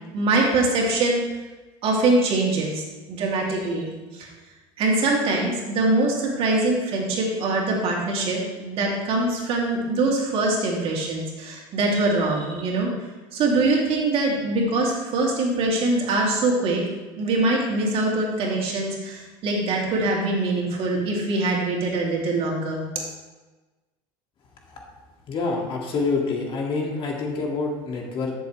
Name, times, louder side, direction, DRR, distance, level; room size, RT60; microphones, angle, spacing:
voice 1, 0.1-1.2 1.8-4.3 4.8-12.9 13.3-16.8 17.2-22.8, right 2 dB, 50° right, -2 dB, 2.6 m, -23 dB
voice 2, 25.3-28.3, left 3 dB, 45° left, 0 dB, 2.0 m, -27 dB
13.0 x 7.1 x 3.2 m, 1.2 s
supercardioid pair, 115°, 12 cm